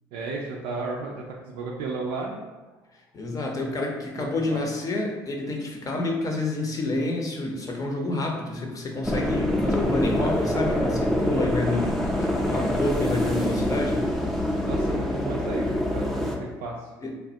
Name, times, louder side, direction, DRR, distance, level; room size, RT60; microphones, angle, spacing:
voice 1, 0.1-2.4 4.2-4.6 14.6-16.9, right 3 dB, 75° right, -2 dB, 0.3 m, -34 dB
voice 2, 3.1-14.1 17.0-17.1, left 2 dB, 40° left, 1 dB, 0.7 m, -28 dB
sound 1, 9.0-16.4, left 1 dB, ahead, 0.5 m, -25 dB
3.1 x 2.3 x 2.7 m, 1.2 s
hypercardioid pair, 60°, 10 cm